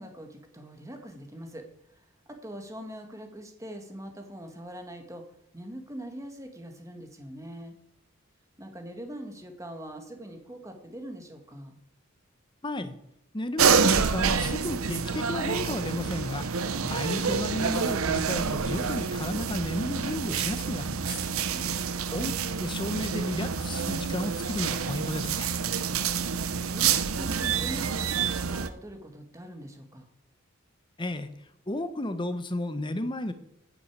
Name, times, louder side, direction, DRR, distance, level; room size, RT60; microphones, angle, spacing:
voice 1, 0.0-5.2 5.5-7.7 8.6-11.8 21.3-21.9 25.8-26.1 26.7-30.1, equal, 15° right, 4 dB, 1.9 m, -42 dB
voice 2, 12.6-12.9 13.3-16.5 16.8-21.2 22.1-22.3 22.6-25.5 31.0-31.3 31.7-33.3, left 1 dB, 20° left, 10 dB, 1.0 m, -33 dB
sound 1, 13.6-28.7, right 6 dB, 85° right, 0.8 m, -28 dB
9.4 x 6.9 x 8.9 m, 0.78 s
head